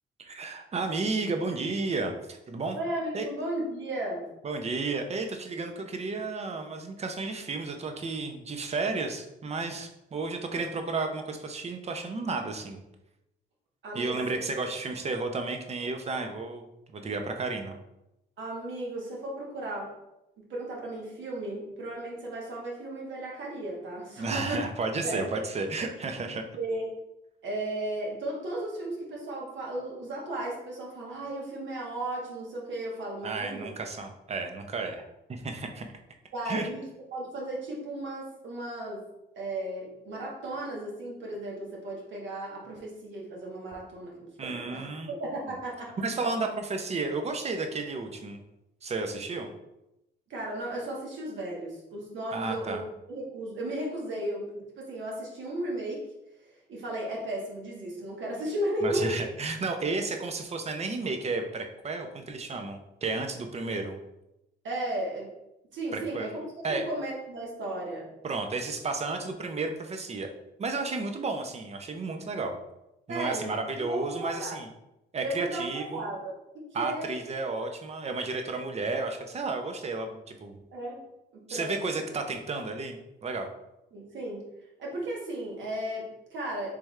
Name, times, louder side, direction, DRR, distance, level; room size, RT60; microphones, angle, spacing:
voice 1, 0.2-2.8 3.1-3.3 4.4-12.8 13.9-17.7 24.2-26.4 33.2-35.0 35.3-35.9 36.4-36.7 44.4-45.6 46.0-48.4 48.8-49.5 52.3-52.8 58.8-64.0 65.9-66.3 66.6-66.9 68.2-70.3 70.6-72.6 73.1-74.7 75.1-76.1 76.7-80.6 81.5-83.5, right 3 dB, 35° right, 5 dB, 0.6 m, -32 dB
voice 2, 2.7-4.3 13.8-14.4 18.4-19.9 20.5-24.6 25.0-25.3 26.6-26.9 27.4-33.7 36.3-39.0 39.3-45.9 50.3-56.0 56.7-59.1 64.6-65.3 65.7-66.4 66.7-68.1 73.1-73.5 73.8-74.6 75.2-77.2 80.7-81.0 81.3-82.0 83.9-84.4 84.8-86.7, right 1 dB, 70° right, -2 dB, 1.3 m, -35 dB
3.4 x 3.4 x 3.1 m, 0.89 s
cardioid pair, 90°, 20 cm